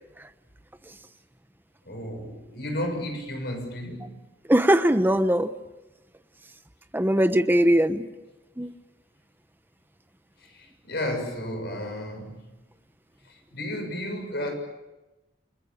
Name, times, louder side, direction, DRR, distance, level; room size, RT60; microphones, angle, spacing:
voice 1, 1.9-4.2 10.4-12.4 13.2-14.5, left 1 dB, 65° left, 5 dB, 6.9 m, -33 dB
voice 2, 4.5-5.5 6.9-8.1 8.6-8.7, equal, 10° right, 10 dB, 1.1 m, -20 dB
29.0 x 21.5 x 7.3 m, 1.0 s
head